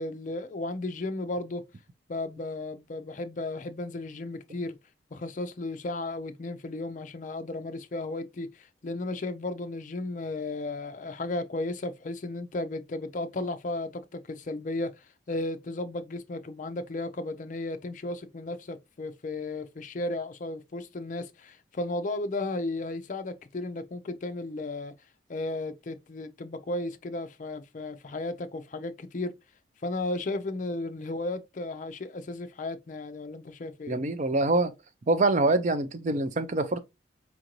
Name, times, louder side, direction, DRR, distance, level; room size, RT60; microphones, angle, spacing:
voice 1, 0.0-1.7 2.1-4.8 5.1-15.0 15.3-24.9 25.3-29.3 29.8-34.0, left 2 dB, 40° left, 0.4 m, -34 dB
voice 2, 33.9-34.7 35.1-36.8, right 2 dB, 40° right, 0.4 m, -25 dB
4.4 x 2.5 x 2.9 m
head